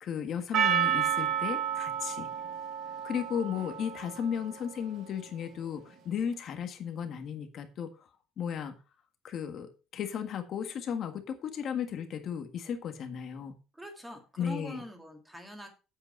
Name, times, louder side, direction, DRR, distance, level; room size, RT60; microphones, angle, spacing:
voice 1, 0.0-2.3 3.0-7.9 8.4-8.8 9.2-13.6 14.4-14.8, left 8 dB, 40° left, 7 dB, 1.6 m, -35 dB
Percussion, 0.5-5.1, right 9 dB, 45° right, 1.2 m, -31 dB
voice 2, 13.7-15.7, equal, 5° right, 3 dB, 2.0 m, -44 dB
8.5 x 8.1 x 4.5 m, 0.32 s
cardioid pair, 165°, 0 cm